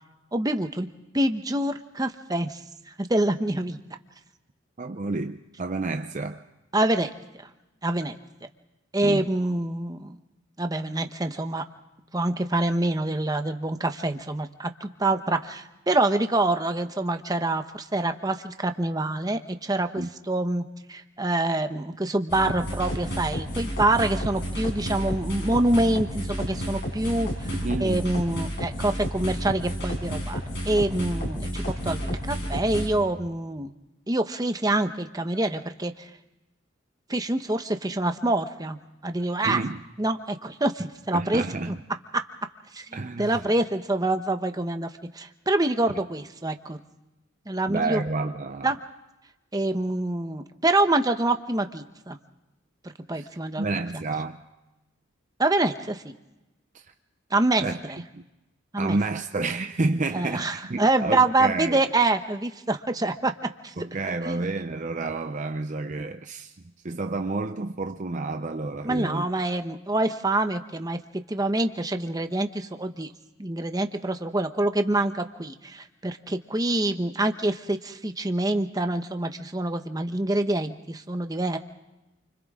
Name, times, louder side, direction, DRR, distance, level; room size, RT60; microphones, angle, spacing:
voice 1, 0.3-0.9 1.1-2.6 3.0-3.8 6.7-7.1 7.8-8.1 8.9-10.2 10.6-11.6 12.1-20.6 20.9-30.4 30.6-33.7 34.1-36.1 37.1-38.8 39.0-39.6 40.0-41.8 42.7-44.9 45.1-46.8 47.5-48.0 48.6-48.8 49.5-52.2 53.1-53.6 55.4-56.1 57.3-58.0 58.7-59.0 60.1-63.3 63.6-63.7 64.1-64.4 68.8-71.0 71.3-73.1 73.4-81.6, right 2 dB, 20° right, 1.0 m, -26 dB
voice 2, 4.8-6.4 9.0-9.3 20.0-20.1 27.5-28.1 39.4-39.8 41.1-41.7 42.9-43.5 47.7-48.7 53.1-53.3 53.6-54.4 56.7-56.8 57.6-57.7 58.1-58.2 58.8-61.8 63.8-66.5 66.8-69.2, right 3 dB, 40° right, 0.6 m, -30 dB
sound 1, 22.3-32.9, equal, 55° left, 6.2 m, -31 dB
28.5 x 26.0 x 3.7 m
head